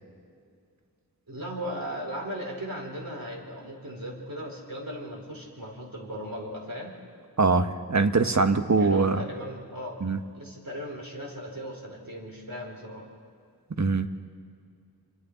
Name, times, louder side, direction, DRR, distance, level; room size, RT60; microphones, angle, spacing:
voice 1, 1.3-6.9 8.8-10.0 10.3-13.0, equal, 60° right, -1 dB, 4.2 m, -37 dB
voice 2, 7.4-9.2 10.0-10.2 13.8-14.1, right 4 dB, 45° right, 8 dB, 1.0 m, -22 dB
28.5 x 24.5 x 4.0 m, 2.2 s
wide cardioid pair, 60°, 39 cm